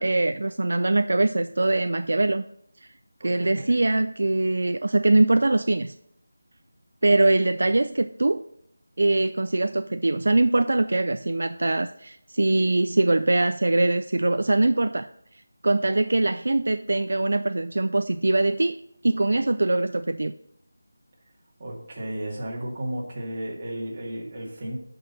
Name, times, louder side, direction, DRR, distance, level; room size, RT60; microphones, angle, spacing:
voice 1, 0.0-2.4 3.2-5.9 7.0-8.4 9.0-15.1 15.6-18.8 19.0-20.3, right 2 dB, 60° right, 10 dB, 0.4 m, -22 dB
voice 2, 3.2-3.6 21.6-24.8, right 1 dB, 25° right, -4 dB, 2.3 m, -33 dB
13.0 x 5.4 x 4.1 m, 0.71 s
figure-of-eight pair, 175°, 0 cm